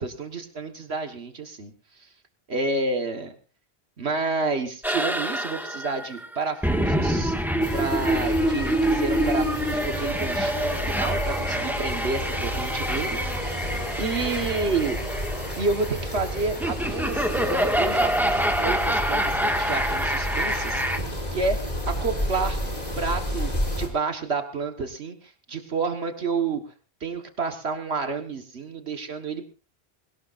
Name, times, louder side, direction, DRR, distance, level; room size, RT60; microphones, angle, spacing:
voice 1, 0.0-2.1 2.5-3.4 4.0-7.4 7.7-13.2 14.0-15.0 15.6-22.6 23.0-26.7 27.0-29.5, right 4 dB, 70° right, 6 dB, 1.7 m, -30 dB
sound 1, 4.8-21.0, equal, ahead, 1.8 m, -26 dB
sound 2, 7.6-23.9, equal, 40° left, 3.7 m, -31 dB
sound 3, 9.2-14.6, equal, 20° right, 7.2 m, -47 dB
21.5 x 18.0 x 2.6 m, 0.34 s
omnidirectional pair, 1.1 m